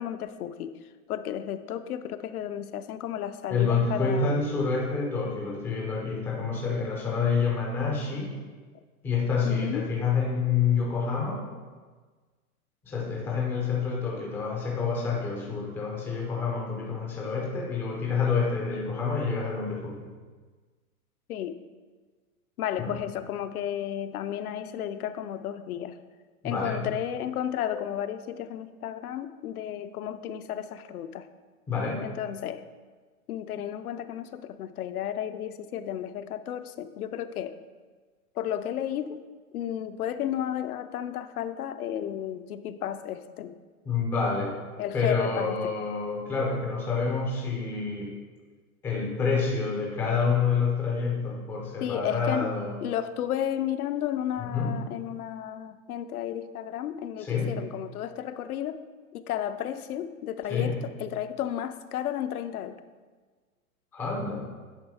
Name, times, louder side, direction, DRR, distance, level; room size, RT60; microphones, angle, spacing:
voice 1, 0.0-4.5 9.4-9.9 21.3-21.6 22.6-26.0 26.4-31.3 32.0-32.7 33.3-37.6 38.3-39.2 39.5-43.6 44.8-45.7 51.8-52.5 52.8-58.8 59.1-62.8, left 10 dB, 75° left, 11 dB, 0.6 m, -33 dB
voice 2, 3.5-8.3 9.0-11.4 12.8-20.0 22.8-23.0 26.4-26.8 31.7-32.0 43.8-44.5 44.9-48.1 48.8-52.7 54.4-54.8 57.2-57.5 60.5-60.8 63.9-64.4, left 5 dB, 5° left, -2 dB, 0.3 m, -28 dB
9.3 x 3.3 x 4.8 m, 1.4 s
hypercardioid pair, 135°, 45 cm